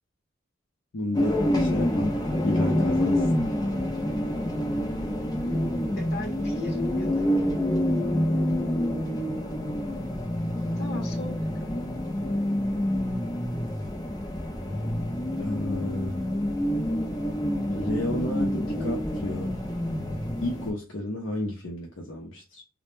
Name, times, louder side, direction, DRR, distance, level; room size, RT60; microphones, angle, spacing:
voice 1, 0.9-3.3 15.4-16.2 17.7-19.6 20.4-22.6, left 1 dB, 75° left, 0.5 m, -32 dB
sound 1, 1.1-20.7, left 1 dB, 20° left, 0.4 m, -27 dB
voice 2, 6.0-7.5 10.8-11.8, left 1 dB, 55° left, 0.9 m, -39 dB
2.1 x 2.1 x 3.0 m
head